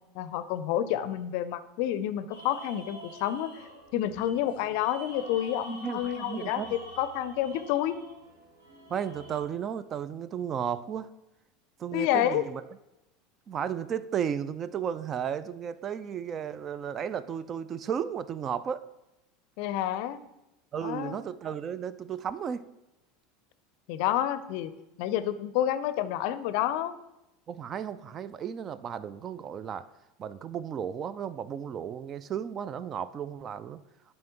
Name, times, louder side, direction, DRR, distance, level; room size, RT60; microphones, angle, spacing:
voice 1, 0.1-3.6 3.9-8.0 11.9-12.4 19.6-20.2 20.8-21.2 23.9-24.7 25.0-26.9, left 11 dB, 55° left, 13 dB, 0.5 m, -29 dB
sound 1, 2.3-9.4, equal, 80° right, 2.2 m, -47 dB
voice 2, 5.7-6.7 8.9-11.1 11.8-12.6 13.5-18.8 20.7-22.7 27.5-29.9 30.2-33.8, right 8 dB, 35° right, 16 dB, 0.4 m, -34 dB
12.0 x 5.4 x 2.9 m, 0.93 s
figure-of-eight pair, 75°, 0 cm